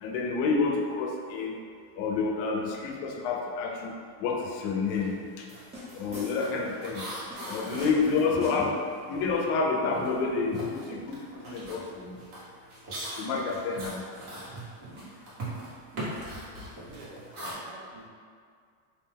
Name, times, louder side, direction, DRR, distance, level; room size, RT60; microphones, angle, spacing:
voice 1, 0.0-1.6 2.0-3.9 4.2-5.2 6.0-7.0 7.5-8.7 9.1-11.2 11.5-12.2 13.2-14.0, left 4 dB, 65° left, 1 dB, 0.5 m, -28 dB
sound 1, 4.9-5.2 5.4-9.5 9.8-17.5, right 1 dB, 80° right, 1.2 m, -40 dB
sound 2, 5.5-6.7 7.3-8.9, left 1 dB, 15° right, 0.6 m, -44 dB
voice 2, 7.6-8.8 16.9-18.1, right 3 dB, 60° right, -1 dB, 0.6 m, -48 dB
2.6 x 2.1 x 3.3 m, 2.1 s
supercardioid pair, 130°, 44 cm